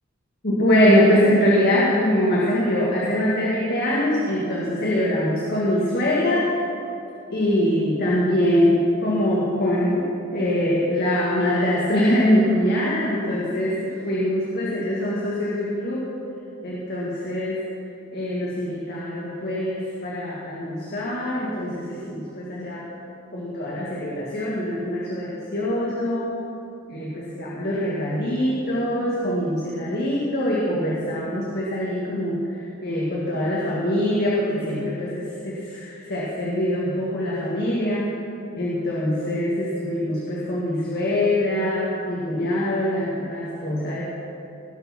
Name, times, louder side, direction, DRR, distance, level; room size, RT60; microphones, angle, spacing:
voice 1, 0.4-6.5 7.3-16.1 16.6-17.6 18.1-22.9 23.3-26.4 26.9-32.4 32.8-38.1 38.6-44.0, left 1 dB, 50° left, -6 dB, 2.0 m, -23 dB
19.0 x 6.8 x 6.1 m, 2.7 s
head